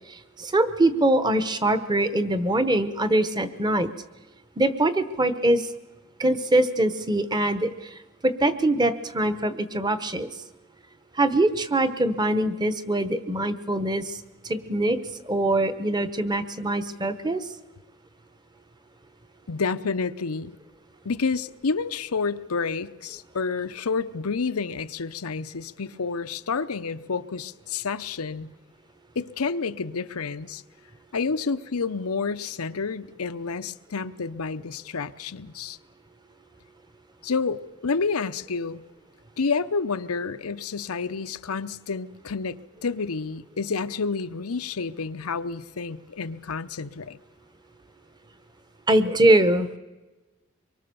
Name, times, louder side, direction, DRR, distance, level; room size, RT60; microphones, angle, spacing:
voice 1, 0.1-3.9 4.6-5.7 6.2-10.3 11.2-15.0 15.3-17.5 48.9-49.7, right 1 dB, 20° right, 1.0 m, -23 dB
voice 2, 19.5-20.6 21.0-28.5 29.2-30.6 31.1-35.8 37.2-38.8 39.4-47.2, left 4 dB, 90° left, 0.8 m, -29 dB
24.5 x 23.0 x 7.0 m
head